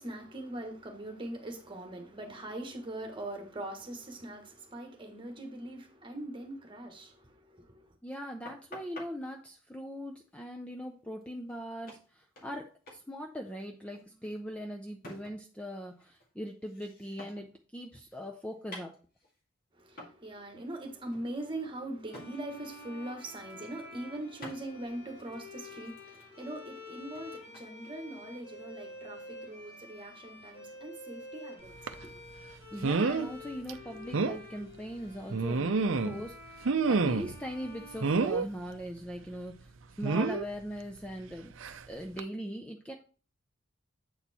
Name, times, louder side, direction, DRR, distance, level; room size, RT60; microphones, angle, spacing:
voice 1, 0.0-7.9 19.8-32.1, right 1 dB, 25° right, 1.5 m, -42 dB
voice 2, 8.0-18.9 32.7-39.7 40.0-41.5 41.9-42.9, equal, 5° left, 0.6 m, -40 dB
sound 1, 8.5-9.1 11.2-11.3 11.5-11.6 11.9-12.6 12.9-13.1 13.3-15.6 15.9-17.6 17.9-19.4 20.0-20.2 20.6-20.8 21.1-22.3 22.7-22.9 23.2-23.8 24.4-24.6 25.2-27.7, left 1 dB, 45° left, 2.2 m, -50 dB
sound 2, 22.0-38.9, left 2 dB, 65° left, 4.5 m, -49 dB
sound 3, 31.9-32.0 32.8-33.3 33.7-33.8 34.1-34.4 35.3-36.2 36.6-37.4 38.0-38.5 40.0-40.4 41.6-41.8 42.2-42.3, right 4 dB, 65° right, 0.6 m, -28 dB
8.1 x 4.3 x 4.2 m
head